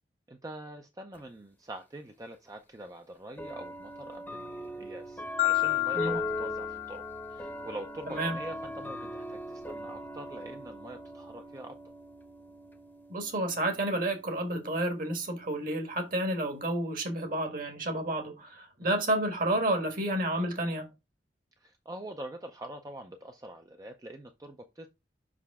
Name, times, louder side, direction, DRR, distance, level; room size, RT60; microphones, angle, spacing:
voice 1, 0.3-7.0 7.3-11.8 18.8-18.9 21.6-24.9, right 1 dB, 20° right, 0.5 m, -44 dB
sound 1, 1.1-1.2 2.3-2.4 3.4-16.6, equal, 10° left, 0.8 m, -41 dB
Marimba xylophone, 5.4-7.6, left 22 dB, 50° left, 0.5 m, -30 dB
voice 2, 8.1-8.4 13.1-20.9, right 1 dB, 50° right, 1.4 m, -30 dB
5.6 x 4.8 x 3.5 m
head